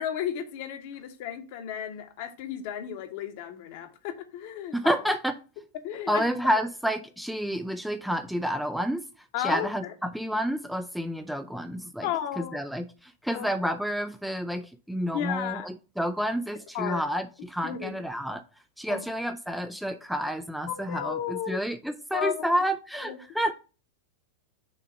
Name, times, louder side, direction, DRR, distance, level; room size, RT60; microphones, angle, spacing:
voice 1, 0.0-4.9 5.8-6.2 9.3-9.9 12.0-12.6 13.3-13.5 15.1-15.7 16.7-17.1 17.6-18.0 18.9-19.0 20.7-21.6 22.1-22.5 23.0-23.2, left 10 dB, 50° left, 1.0 m, -33 dB
voice 2, 4.7-5.3 6.1-9.0 9.4-12.1 12.4-18.4 18.8-23.5, equal, ahead, 0.4 m, -29 dB
6.5 x 2.8 x 5.6 m
figure-of-eight pair, 90°, 0 cm